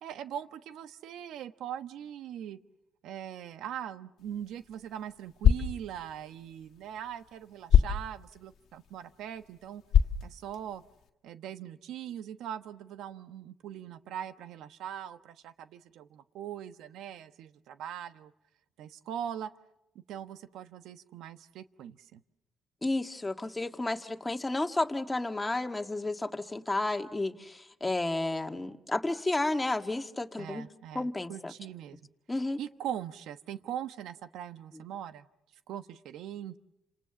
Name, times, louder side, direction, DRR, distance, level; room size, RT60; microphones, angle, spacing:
voice 1, 0.0-2.6 3.0-9.8 10.2-10.8 11.2-18.3 18.8-19.5 19.9-22.2 30.4-32.0 32.6-35.3 35.7-36.6, right 10 dB, 85° right, 11 dB, 1.2 m, -41 dB
sound 1, 4.2-11.1, left 8 dB, 75° left, 1.7 m, -29 dB
voice 2, 22.8-30.7 30.9-31.5 32.3-32.6, left 2 dB, 15° left, 5 dB, 1.9 m, -32 dB
30.0 x 27.0 x 7.1 m, 0.87 s
cardioid pair, 90°, 0 cm